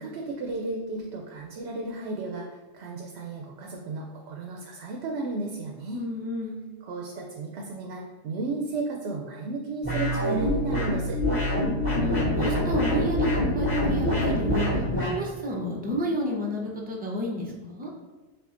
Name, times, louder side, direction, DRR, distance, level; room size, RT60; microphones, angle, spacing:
voice 1, 0.0-6.0 6.8-11.2, right 3 dB, 70° right, 0 dB, 0.8 m, -34 dB
voice 2, 5.9-6.6 11.9-17.9, equal, 10° right, -2 dB, 0.4 m, -31 dB
sound 1, 9.8-15.1, left 1 dB, 40° left, 1.6 m, -25 dB
7.0 x 2.4 x 2.5 m, 1.2 s
omnidirectional pair, 1.2 m